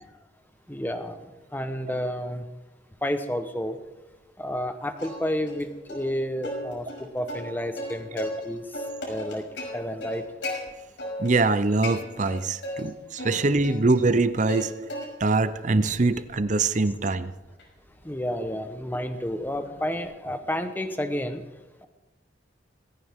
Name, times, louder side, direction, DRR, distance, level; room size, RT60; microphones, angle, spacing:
voice 1, 0.7-1.2 1.5-2.4 3.0-3.8 4.4-8.6 9.1-9.4 9.7-10.2 18.0-21.4, equal, 10° left, 8 dB, 1.0 m, -30 dB
Plucked string instrument, 5.0-5.6 5.9-6.0 6.4-8.5 8.7-10.6 11.0-11.5 11.8-12.8 13.2-14.6 14.9-15.4 15.8-20.0, left 1 dB, 90° left, 6.0 m, -36 dB
voice 2, 11.2-14.7 15.2-17.3, right 3 dB, 45° right, 14 dB, 0.7 m, -23 dB
19.0 x 16.5 x 3.7 m, 1.1 s
head